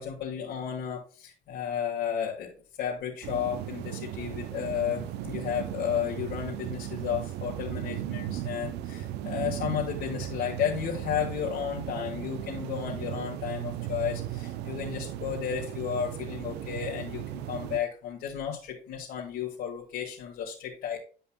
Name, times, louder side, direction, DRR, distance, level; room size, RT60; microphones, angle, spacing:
voice 1, 0.0-2.5 2.8-21.0, left 8 dB, 80° left, -4 dB, 2.0 m, -33 dB
sound 1, 3.2-17.8, right 12 dB, 85° right, 0.6 m, -36 dB
11.0 x 5.5 x 2.3 m, 0.39 s
cardioid pair, 110°, 17 cm